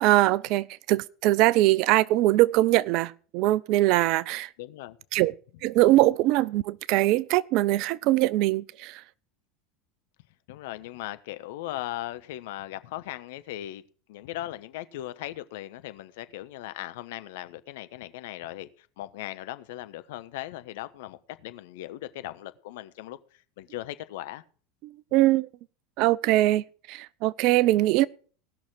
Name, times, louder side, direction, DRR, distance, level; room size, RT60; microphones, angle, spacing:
voice 1, 0.0-4.5 5.1-5.3 5.6-9.0 24.8-25.5 26.0-28.1, right 16 dB, 55° right, 0.5 m, -22 dB
voice 2, 4.6-5.0 10.5-13.8 14.1-18.7 19.0-23.2 23.6-24.4, left 15 dB, 65° left, 1.0 m, -38 dB
17.5 x 6.3 x 6.0 m
hypercardioid pair, 80°, 0 cm